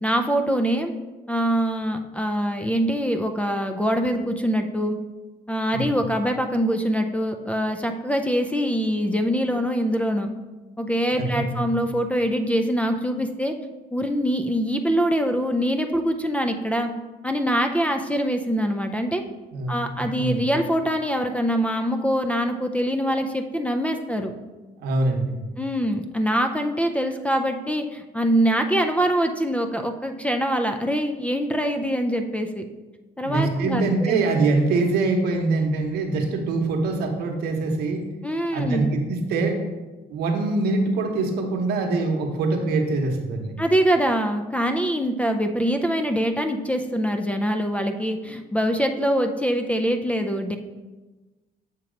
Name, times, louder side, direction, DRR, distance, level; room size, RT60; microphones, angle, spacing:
voice 1, 0.0-0.9 1.3-5.0 5.5-10.3 10.8-13.5 13.9-16.9 17.2-19.2 19.7-24.3 25.6-32.6 33.2-34.2 38.2-38.9 43.6-50.6, equal, 10° left, 6 dB, 0.4 m, -24 dB
voice 2, 11.2-11.7 19.5-20.4 24.8-25.4 33.2-38.0 38.5-39.6 40.1-43.6, right 3 dB, 75° right, 3 dB, 1.0 m, -24 dB
7.2 x 2.9 x 5.0 m, 1.2 s
cardioid pair, 110°, 17 cm